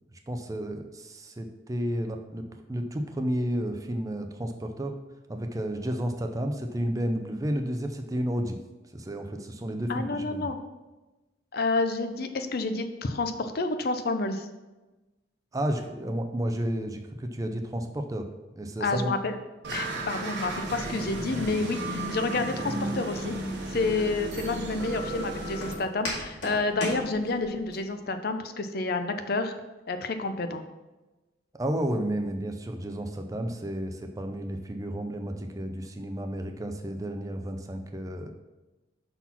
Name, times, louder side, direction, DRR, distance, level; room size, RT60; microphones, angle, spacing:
voice 1, 0.3-4.9 5.3-8.6 8.9-10.5 15.5-18.3 18.6-19.1 31.5-38.3, right 1 dB, 20° right, 5 dB, 0.5 m, -31 dB
voice 2, 9.9-10.6 11.5-14.5 18.8-19.4 19.7-23.4 23.7-29.5 29.9-30.6, left 3 dB, 55° left, 9 dB, 0.5 m, -29 dB
sound 1, 19.6-25.7, right 2 dB, 65° right, 1.1 m, -34 dB
Walk footsteps, 23.2-27.8, left 1 dB, 85° left, 2.2 m, -38 dB
5.8 x 4.1 x 5.7 m, 1.1 s
head